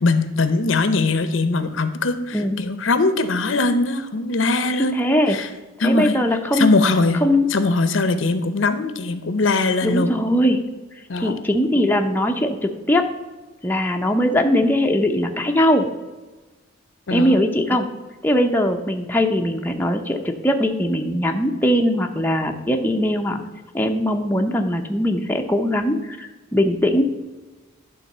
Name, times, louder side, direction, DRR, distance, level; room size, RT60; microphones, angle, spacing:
voice 1, 0.0-5.5 5.8-6.2 6.5-7.2 7.5-10.1 11.1-11.3 17.1-17.4, left 3 dB, 70° left, 11 dB, 0.7 m, -21 dB
voice 2, 4.9-5.4 5.8-6.8 7.2-7.5 9.8-10.6 11.2-13.1 13.6-15.9 17.1-17.9 18.2-23.4 23.7-27.0, left 1 dB, 10° left, 3 dB, 0.7 m, -20 dB
11.0 x 3.9 x 6.6 m, 1.2 s
head